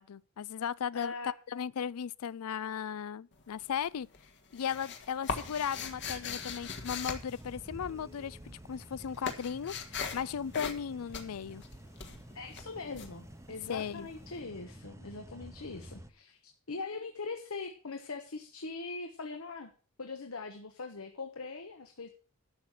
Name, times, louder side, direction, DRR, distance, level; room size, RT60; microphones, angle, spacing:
voice 1, 0.0-4.1 4.5-11.6 13.7-14.1, left 8 dB, 90° left, 0.4 m, -36 dB
voice 2, 0.9-1.3 12.3-19.7 20.0-22.1, left 3 dB, 70° left, 1.1 m, -41 dB
sound 1, 3.3-3.8 4.1-8.2 8.5-14.0, left 5 dB, 55° left, 1.6 m, -40 dB
sound 2, 5.4-16.1, right 1 dB, 15° right, 0.8 m, -50 dB
11.5 x 6.6 x 6.1 m
head